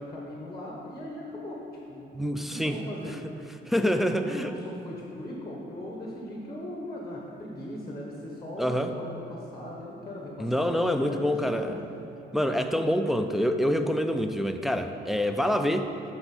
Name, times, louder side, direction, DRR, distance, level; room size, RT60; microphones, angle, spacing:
voice 1, 0.0-3.5 3.8-11.8, left 1 dB, 20° left, -2 dB, 1.0 m, -39 dB
voice 2, 2.1-2.8 3.7-4.5 8.6-8.9 10.4-11.7 12.3-15.9, equal, ahead, 6 dB, 0.4 m, -26 dB
7.9 x 4.1 x 5.3 m, 2.8 s
cardioid pair, 90°, 20 cm